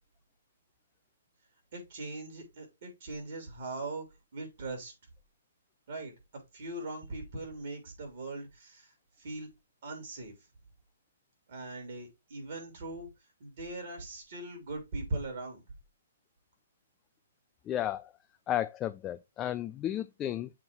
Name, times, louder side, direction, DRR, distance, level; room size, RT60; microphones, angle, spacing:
voice 1, 1.7-4.0 4.3-4.9 5.9-8.9 9.2-9.5 9.8-10.3 11.5-13.1 13.4-15.6, right 2 dB, 55° right, 3.2 m, -40 dB
voice 2, 17.6-18.1 18.5-20.5, left 12 dB, 20° left, 0.3 m, -33 dB
7.2 x 3.1 x 4.6 m
hypercardioid pair, 140°, 0 cm